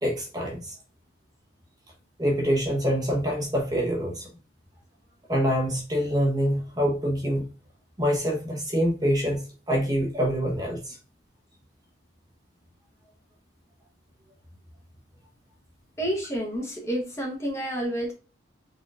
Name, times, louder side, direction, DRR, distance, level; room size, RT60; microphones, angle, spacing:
voice 1, 0.0-0.7 2.2-4.3 5.3-7.4 8.0-9.4 9.7-11.0, equal, 20° right, -1 dB, 0.8 m, -25 dB
voice 2, 16.0-18.1, equal, 15° left, 0 dB, 0.9 m, -29 dB
4.0 x 3.7 x 2.4 m, 0.35 s
head